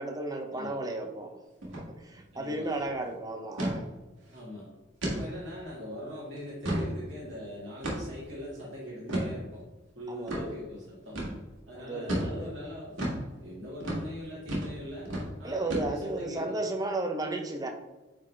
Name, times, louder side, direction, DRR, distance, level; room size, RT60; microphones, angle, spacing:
voice 1, 0.0-1.3 1.8-3.9 5.2-5.3 10.1-10.5 11.8-12.4 15.4-17.7, right 2 dB, 20° right, 4 dB, 0.6 m, -34 dB
sound 1, 1.6-1.9 2.2-2.3 2.6-2.9 3.6-3.8 4.3-4.4 5.0-5.2 5.7-5.8 6.4-6.9 7.8-8.2 9.1-9.3 10.3-10.4 11.1-11.3 12.1-12.3 13.0-13.2 13.8-14.0 14.5-14.7 15.0-15.3 15.7-16.2, right 1 dB, 90° right, 1.9 m, -31 dB
voice 2, 2.3-2.7 4.3-4.7 5.0-9.6 10.0-11.2 11.7-13.0 13.4-15.1 15.4-16.6, left 1 dB, 65° right, -7 dB, 1.9 m, -41 dB
8.7 x 3.8 x 3.3 m, 1.2 s
head